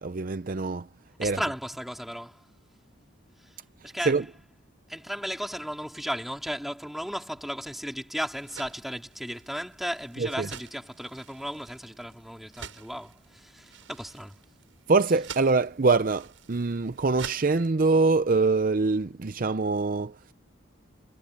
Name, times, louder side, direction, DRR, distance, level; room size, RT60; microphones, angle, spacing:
voice 1, 0.0-0.9 1.2-1.4 4.1-4.2 10.2-10.5 14.9-20.3, right 3 dB, 45° right, 0.5 m, -24 dB
voice 2, 1.2-2.5 3.4-3.6 3.8-4.2 4.9-14.4, equal, ahead, 3.4 m, -35 dB
sound 1, 8.2-17.7, right 7 dB, 70° right, 7.7 m, -47 dB
head